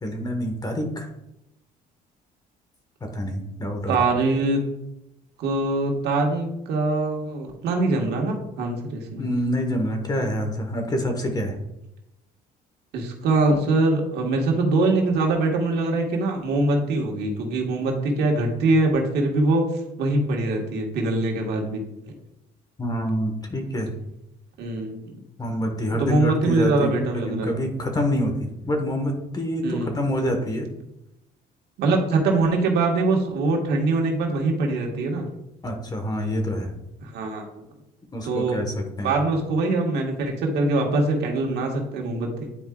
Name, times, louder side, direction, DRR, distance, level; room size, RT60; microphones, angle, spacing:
voice 1, 0.0-1.1 3.1-4.0 9.2-11.5 22.8-23.9 25.4-28.3 28.6-30.7 35.6-36.7 38.1-39.1, equal, 25° left, 4 dB, 1.2 m, -26 dB
voice 2, 3.9-4.6 5.4-9.2 12.9-19.6 20.0-21.8 24.6-25.1 26.0-27.5 29.6-29.9 31.8-35.3 37.0-37.6 38.2-38.7 39.0-42.5, right 2 dB, 75° right, 1 dB, 1.5 m, -23 dB
9.8 x 4.7 x 2.3 m, 0.87 s
cardioid pair, 110°, 17 cm